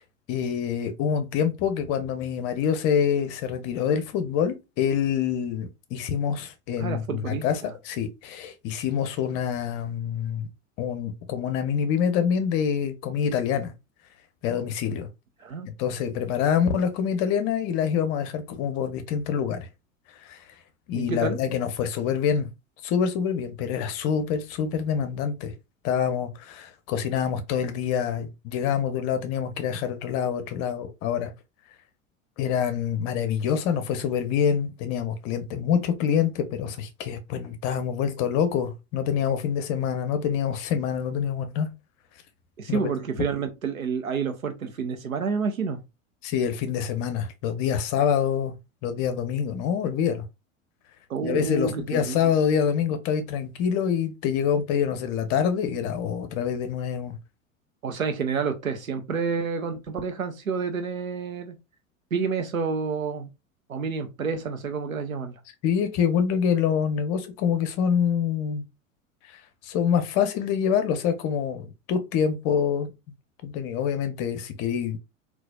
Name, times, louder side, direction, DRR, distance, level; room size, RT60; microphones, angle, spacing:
voice 1, 0.3-10.5 10.8-13.7 14.4-15.1 15.8-19.7 20.2-20.4 20.9-22.5 22.8-25.5 25.8-31.3 32.4-41.7 42.7-42.9 46.2-48.5 48.8-50.2 51.2-57.2 65.6-68.6 69.3-72.9 73.4-75.0, left 8 dB, 40° left, 0.7 m, -26 dB
voice 2, 6.8-7.7 15.4-15.7 20.9-21.4 42.6-45.8 51.1-52.4 57.8-61.6 62.1-63.3 63.7-65.4, right 5 dB, 85° right, 0.7 m, -29 dB
3.9 x 2.4 x 2.2 m
figure-of-eight pair, 85°, 40 cm